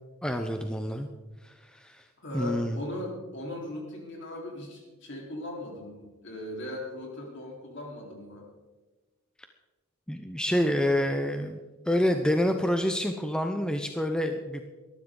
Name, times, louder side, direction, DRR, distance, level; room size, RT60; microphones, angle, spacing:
voice 1, 0.2-1.1 1.4-2.1 2.3-2.8 10.1-11.6 11.9-14.7, equal, 5° left, 5 dB, 0.6 m, -27 dB
voice 2, 2.2-8.5, left 1 dB, 55° left, -1 dB, 4.0 m, -38 dB
19.0 x 13.5 x 3.8 m, 1.2 s
head